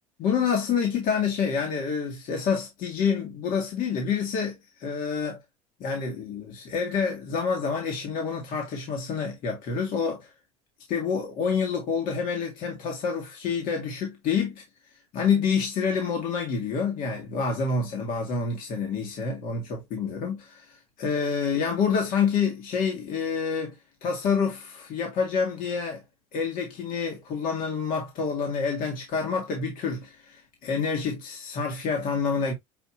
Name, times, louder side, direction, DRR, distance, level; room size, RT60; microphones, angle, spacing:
voice 1, 0.2-4.5 4.8-5.4 5.8-10.3 10.9-14.6 15.1-20.6 21.0-23.7 24.0-26.0 26.3-32.5, left 6 dB, 60° left, 2.0 m, -27 dB
6.8 x 2.8 x 2.8 m
supercardioid pair, 100°, 16 cm